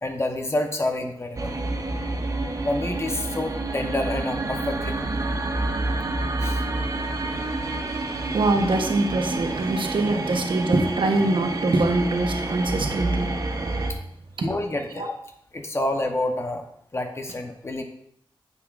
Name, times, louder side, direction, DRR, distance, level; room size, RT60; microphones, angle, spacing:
voice 1, 0.0-1.6 2.6-5.1 6.4-6.7 13.9-14.0 14.4-15.1 15.5-16.6 16.9-17.8, left 1 dB, 30° left, 4 dB, 0.9 m, -28 dB
sound 1, 1.4-13.9, right 2 dB, 40° right, 0.9 m, -28 dB
voice 2, 7.8-13.4 14.4-14.5 15.0-15.1, right 2 dB, 65° right, 4 dB, 1.0 m, -24 dB
9.4 x 7.0 x 2.5 m, 0.70 s
wide cardioid pair, 115°, 9 cm